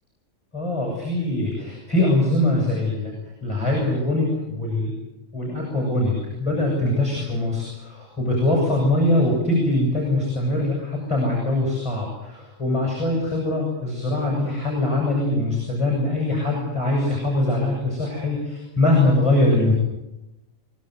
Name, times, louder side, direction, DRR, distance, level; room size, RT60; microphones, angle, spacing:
voice 1, 0.5-3.1 3.4-4.9 5.3-19.7, left 1 dB, 20° left, -1 dB, 8.0 m, -22 dB
25.0 x 22.0 x 8.1 m, 0.94 s
omnidirectional pair, 1.4 m